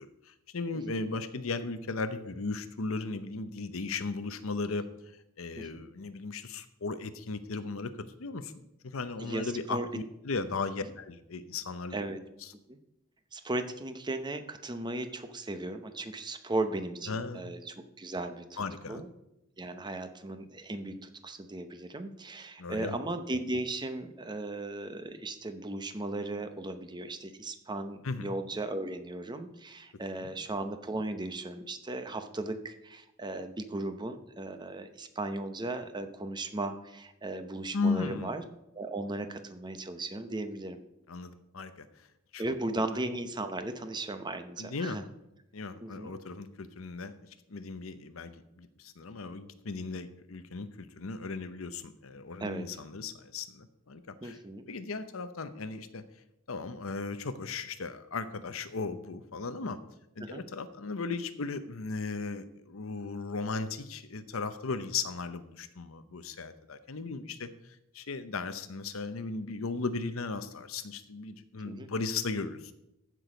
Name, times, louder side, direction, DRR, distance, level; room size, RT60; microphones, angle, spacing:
voice 1, 0.0-4.8 5.4-8.5 8.8-12.0 12.4-12.5 17.1-17.5 18.6-19.0 22.6-23.0 28.0-28.3 30.2-30.3 37.7-38.3 41.1-41.9 42.3-42.5 44.6-45.0 45.5-54.4 54.7-56.0 56.5-59.8 60.2-72.7, left 4 dB, 80° left, 11 dB, 0.8 m, -36 dB
voice 2, 9.2-9.9 11.9-12.2 12.7-12.8 13.3-18.6 18.9-19.1 19.6-38.4 38.7-40.8 42.4-45.0 45.8-46.1 52.4-52.7 54.2-54.7 60.2-60.4 71.6-71.9, right 2 dB, 20° right, 8 dB, 0.8 m, -36 dB
15.0 x 6.2 x 5.0 m, 0.87 s
head